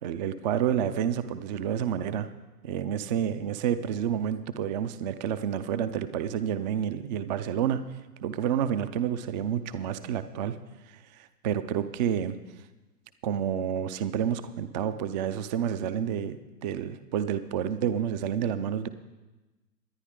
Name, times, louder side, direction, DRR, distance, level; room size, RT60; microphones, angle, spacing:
voice 1, 0.0-2.3 2.6-7.8 8.2-10.6 11.1-12.4 13.2-18.9, right 9 dB, 30° right, 12 dB, 0.5 m, -29 dB
24.0 x 9.9 x 3.7 m, 1.1 s
figure-of-eight pair, 115°, 49 cm